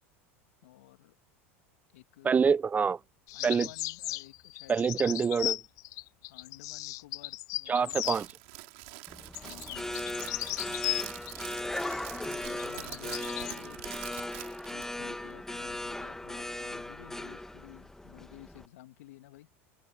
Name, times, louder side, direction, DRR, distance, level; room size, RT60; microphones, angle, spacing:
voice 1, 0.6-1.2 1.9-2.4 3.3-5.0 6.3-8.0 9.4-10.5 12.1-13.9 14.7-19.5, left 16 dB, 75° left, 1.9 m, -52 dB
voice 2, 2.2-3.0 3.4-3.7 4.7-5.6 7.7-8.3, right 6 dB, 20° right, 0.4 m, -26 dB
sound 1, 3.3-8.2 9.3-11.3 12.6-13.6, left 19 dB, 50° left, 0.5 m, -36 dB
Crackle, 7.8-14.9, right 28 dB, 65° right, 4.8 m, -46 dB
sound 2, 9.1-18.7, left 1 dB, 5° left, 1.8 m, -38 dB
open air
hypercardioid pair, 95°, 7 cm